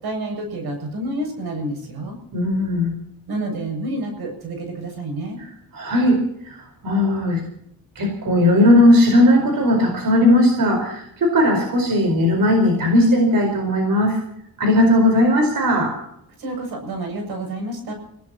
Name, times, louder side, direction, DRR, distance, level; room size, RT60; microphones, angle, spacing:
voice 1, 0.0-2.2 3.3-5.4 16.4-17.9, right 1 dB, 85° right, 4 dB, 7.2 m, -29 dB
voice 2, 2.3-2.9 5.7-7.4 7.9-14.2 14.6-16.0, left 1 dB, 65° right, 3 dB, 4.8 m, -17 dB
27.0 x 17.5 x 3.0 m, 0.76 s
cardioid pair, 90°, 37 cm